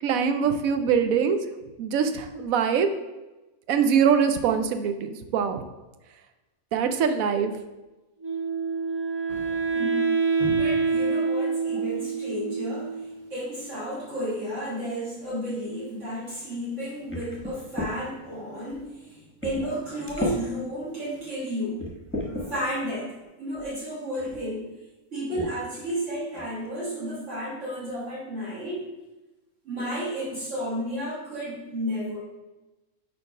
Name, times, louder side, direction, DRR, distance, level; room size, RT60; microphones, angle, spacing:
voice 1, 0.0-1.4 1.8-2.9 3.7-5.6 6.7-7.5, right 7 dB, 75° right, 8 dB, 1.0 m, -23 dB
Wind instrument woodwind instrument, 8.2-13.3, right 4 dB, 25° right, 0.5 m, -26 dB
voice 2, 9.3-21.9 22.2-24.7 25.1-28.9 29.6-32.2, equal, 55° right, -8 dB, 2.0 m, -32 dB
sound 1, 17.1-17.9 18.7-18.8 19.4-19.8 20.1-20.4 21.1-21.2 21.8-22.5 23.6-23.7 24.2-24.4 25.4-25.5 25.9-26.0 26.3-26.7, left 1 dB, 10° left, 0.9 m, -33 dB
5.1 x 4.6 x 4.8 m, 1.1 s
omnidirectional pair, 1.5 m